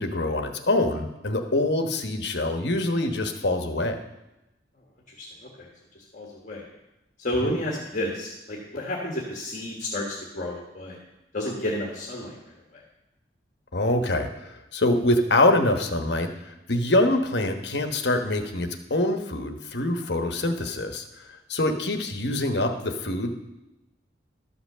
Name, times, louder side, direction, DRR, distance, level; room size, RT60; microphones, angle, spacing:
voice 1, 0.0-4.0 7.4-7.6 13.7-21.0 21.5-23.3, left 2 dB, 65° left, 6 dB, 1.1 m, -25 dB
voice 2, 6.1-6.6 7.2-10.1 10.3-11.0 11.3-12.3 12.7-12.8, left 1 dB, 40° left, -2 dB, 1.6 m, -31 dB
12.5 x 5.9 x 6.7 m, 0.93 s
head